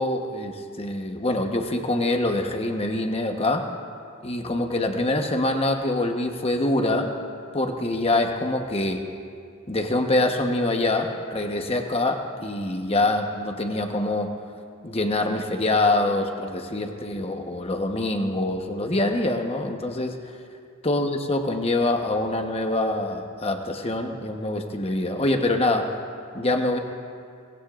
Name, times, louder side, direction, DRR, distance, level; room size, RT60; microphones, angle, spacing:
voice 1, 0.0-3.7 4.2-7.1 7.5-9.0 9.7-14.3 14.8-20.2 20.8-25.9 26.3-26.8, left 2 dB, 25° left, 4 dB, 1.0 m, -25 dB
23.0 x 19.5 x 2.5 m, 2.3 s
head